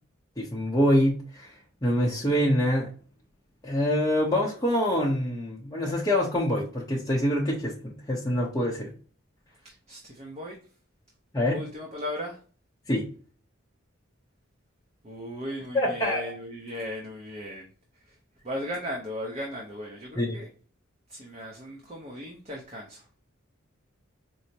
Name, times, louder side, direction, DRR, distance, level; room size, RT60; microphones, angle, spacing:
voice 1, 0.4-1.5 1.8-2.9 3.6-8.9 11.3-11.6 12.9-13.0 15.7-16.2 20.2-20.4, equal, 15° left, -5 dB, 0.7 m, -25 dB
voice 2, 9.6-10.6 11.5-12.4 15.0-17.7 17.9-18.2 18.4-20.5 21.1-23.1, equal, 30° right, -1 dB, 0.7 m, -37 dB
4.5 x 2.0 x 2.7 m, 0.40 s
head